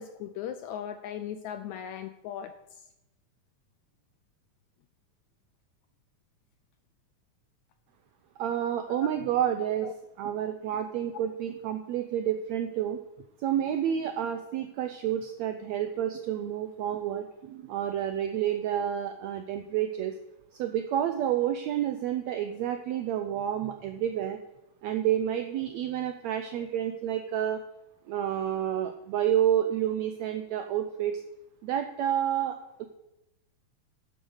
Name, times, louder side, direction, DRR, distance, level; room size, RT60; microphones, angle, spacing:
voice 1, 0.0-2.6 8.9-9.0 9.8-9.9, left 9 dB, 80° left, 10 dB, 1.7 m, -38 dB
voice 2, 8.4-9.9 10.2-13.0 13.4-20.2 20.6-24.4 24.8-27.6 28.1-31.2 31.6-32.9, right 10 dB, 85° right, 7 dB, 1.5 m, -29 dB
10.0 x 7.9 x 6.4 m, 0.90 s
omnidirectional pair, 3.8 m